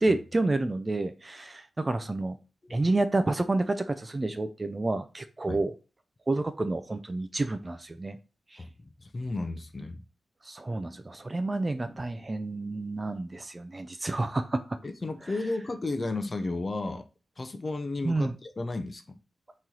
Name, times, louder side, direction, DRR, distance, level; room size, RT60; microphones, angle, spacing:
voice 1, 0.0-2.3 2.7-5.7 6.3-8.2 8.5-8.6 10.4-14.6 18.0-18.4, right 2 dB, 25° right, 0.4 m, -29 dB
voice 2, 9.0-10.0 14.8-17.0 17.4-19.2, left 2 dB, 30° left, 0.6 m, -33 dB
4.2 x 3.1 x 3.8 m
wide cardioid pair, 130°, 0 cm